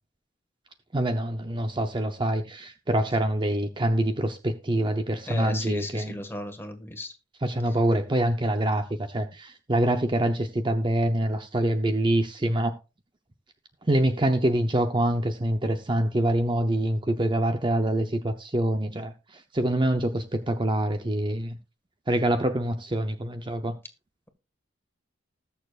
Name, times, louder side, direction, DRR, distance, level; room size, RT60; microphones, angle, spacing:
voice 1, 0.9-6.1 7.4-12.7 13.9-21.6 22.1-23.8, right 1 dB, 25° right, 0.7 m, -25 dB
voice 2, 5.3-7.1 7.7-7.8, left 1 dB, 10° left, 1.7 m, -35 dB
20.0 x 6.8 x 2.4 m
head